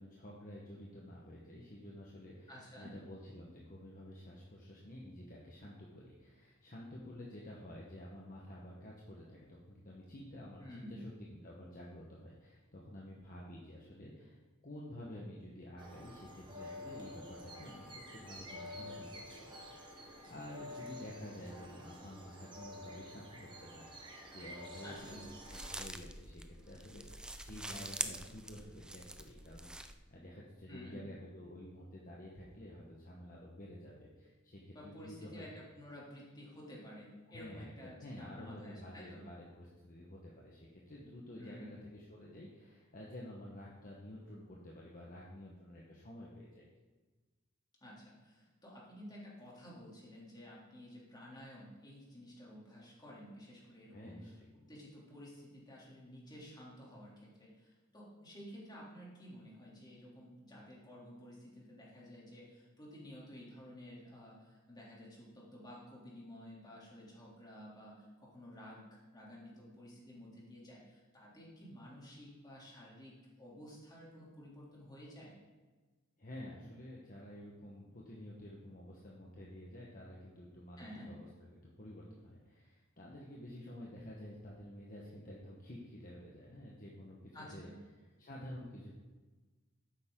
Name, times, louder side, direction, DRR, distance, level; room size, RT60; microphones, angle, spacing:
voice 1, 0.0-2.5 2.8-14.4 14.6-35.4 37.3-46.7 53.9-54.5 76.2-81.3 81.5-87.7 88.0-88.9, left 1 dB, 40° left, -4 dB, 1.4 m, -50 dB
voice 2, 2.5-2.9 10.6-11.0 24.8-25.2 30.7-31.0 34.7-39.2 41.4-41.8 47.8-75.3 80.8-81.1 87.3-87.8, equal, 20° left, -5 dB, 3.2 m, -52 dB
sound 1, 15.8-25.9, left 1 dB, 25° right, 1.3 m, -50 dB
sound 2, 25.0-29.9, right 1 dB, 5° right, 0.4 m, -45 dB
11.5 x 9.0 x 3.9 m, 1.3 s
head